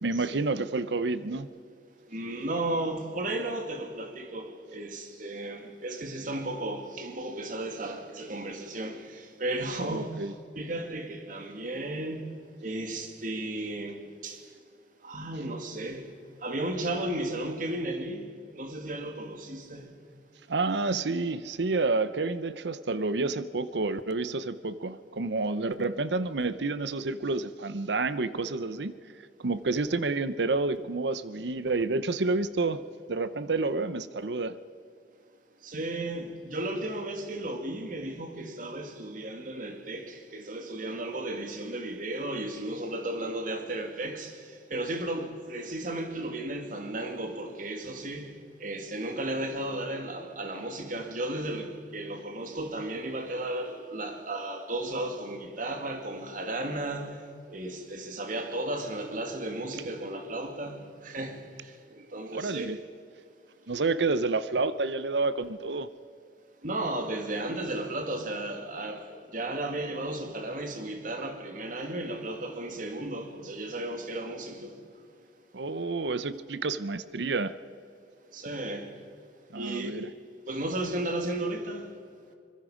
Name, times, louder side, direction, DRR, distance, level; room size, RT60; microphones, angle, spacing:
voice 1, 0.0-1.5 9.8-10.3 20.5-28.9 29.4-32.8 33.1-34.6 62.3-62.8 63.7-65.9 75.5-77.5 79.5-80.1, right 3 dB, 80° right, 0.8 m, -29 dB
voice 2, 2.1-10.3 10.5-12.3 12.6-14.4 15.0-16.1 16.4-19.9 35.6-48.3 48.6-57.2 57.5-62.8 66.6-74.8 78.3-78.9 79.5-80.0 80.5-81.9, right 1 dB, 50° right, 2.4 m, -34 dB
25.0 x 21.5 x 5.1 m
head